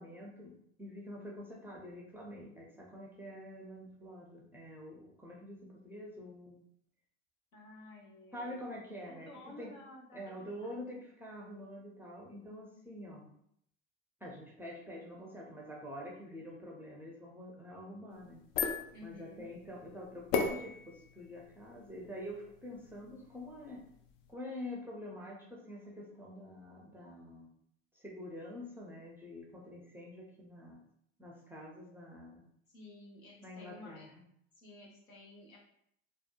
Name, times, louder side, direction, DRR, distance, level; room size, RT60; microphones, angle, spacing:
voice 1, 0.0-6.6 8.3-9.7 10.1-13.3 14.2-18.4 19.0-23.8 24.3-27.5 27.9-30.8 31.2-32.5 33.4-34.1, left 1 dB, 5° right, -3 dB, 0.4 m, -47 dB
voice 2, 7.5-8.6 9.1-10.7 18.9-19.5 32.7-34.1 34.5-35.6, left 2 dB, 85° left, -3 dB, 0.9 m, -53 dB
sound 1, 18.1-24.3, left 5 dB, 65° left, 0.6 m, -39 dB
2.7 x 2.1 x 2.3 m, 0.70 s
hypercardioid pair, 75°, 40 cm